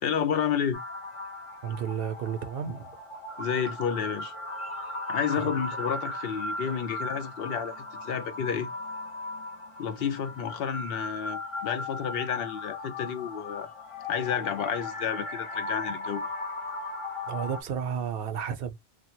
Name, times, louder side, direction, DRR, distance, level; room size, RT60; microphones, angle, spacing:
voice 1, 0.0-0.8 3.4-4.3 5.1-8.7 9.8-13.7 14.1-16.3, left 7 dB, 70° left, 0.8 m, -30 dB
sound 1, 0.7-17.6, left 2 dB, 40° left, 0.6 m, -37 dB
voice 2, 1.6-3.0 5.3-5.4 17.3-18.8, right 8 dB, 70° right, 0.7 m, -32 dB
3.2 x 2.1 x 2.9 m
omnidirectional pair, 1.1 m